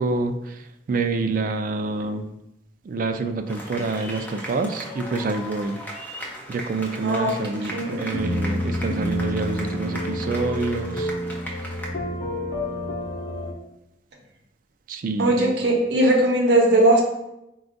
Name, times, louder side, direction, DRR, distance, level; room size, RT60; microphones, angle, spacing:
voice 1, 0.0-2.3 2.8-5.8 6.5-11.1 14.9-15.3, right 3 dB, 45° right, 8 dB, 0.3 m, -27 dB
sound 1, 3.5-11.9, equal, 10° left, 0.5 m, -37 dB
voice 2, 7.0-8.0 15.2-17.0, right 1 dB, 60° right, -1 dB, 0.8 m, -19 dB
sound 2, 8.1-13.5, equal, 75° left, 0.7 m, -28 dB
4.3 x 2.3 x 3.9 m, 0.88 s
head